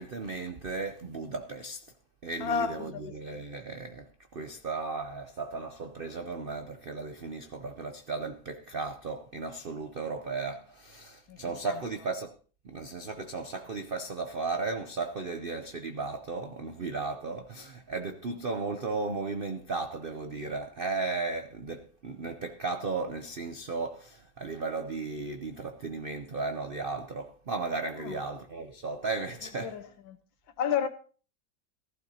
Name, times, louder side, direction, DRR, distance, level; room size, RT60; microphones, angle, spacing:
voice 1, 0.0-1.8 2.2-4.1 4.3-12.3 12.6-29.8, right 3 dB, 85° right, 0.4 m, -35 dB
voice 2, 2.4-3.4 11.3-11.4 11.6-11.8 28.0-28.2 29.6-30.2 30.6-30.9, left 7 dB, 85° left, 1.8 m, -32 dB
15.0 x 15.0 x 2.8 m
omnidirectional pair, 2.1 m